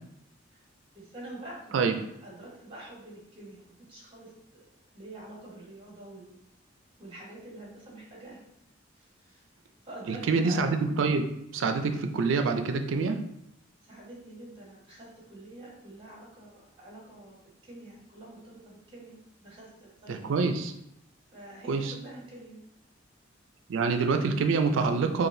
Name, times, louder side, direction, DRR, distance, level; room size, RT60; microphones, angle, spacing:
voice 1, 0.9-1.7 2.2-6.4 7.0-8.5 8.9-9.5 9.8-10.8 13.8-20.4 21.3-22.6, right 1 dB, 30° right, -4 dB, 1.3 m, -46 dB
voice 2, 10.1-11.3 11.5-13.2 20.1-20.7 21.7-21.9 23.7-25.3, right 4 dB, 85° right, 6 dB, 0.4 m, -26 dB
4.8 x 2.5 x 2.6 m, 0.79 s
head